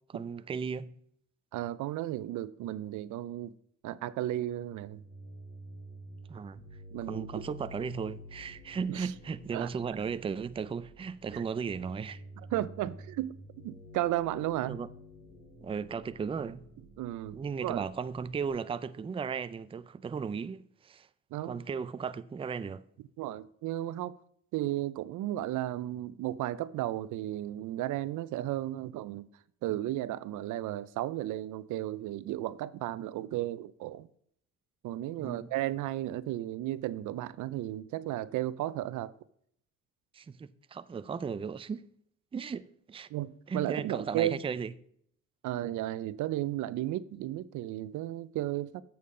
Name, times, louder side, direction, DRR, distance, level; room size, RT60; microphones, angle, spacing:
voice 1, 0.1-0.9 6.3-6.6 7.1-12.2 12.8-12.9 14.7-14.9 15.6-16.6 17.3-21.1 21.4-22.8 35.2-35.5 40.1-41.8 42.3-43.1 43.5-44.7, right 6 dB, 20° right, 0.4 m, -36 dB
voice 2, 1.5-3.6 3.8-5.0 6.9-7.5 8.9-9.1 9.5-10.0 11.3-11.4 12.5-13.3 13.6-14.8 17.0-17.9 21.3-21.6 23.2-24.1 24.5-29.3 29.6-34.1 34.8-39.1 43.1-44.4 45.4-48.8, right 14 dB, 80° right, 0.5 m, -34 dB
sound 1, 4.8-18.5, equal, 35° left, 3.8 m, -50 dB
8.4 x 7.1 x 3.7 m
cardioid pair, 90°, 30 cm